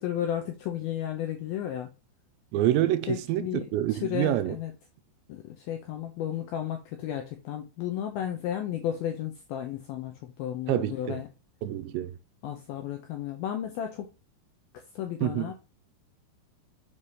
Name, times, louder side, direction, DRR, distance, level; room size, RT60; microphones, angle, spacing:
voice 1, 0.0-1.9 3.1-4.7 5.3-11.3 12.4-14.1 15.0-15.5, left 10 dB, 85° left, 2.1 m, -33 dB
voice 2, 2.5-4.6 10.7-11.2 11.6-12.2 15.2-15.5, right 13 dB, 85° right, 2.8 m, -27 dB
7.3 x 3.2 x 5.4 m
omnidirectional pair, 5.2 m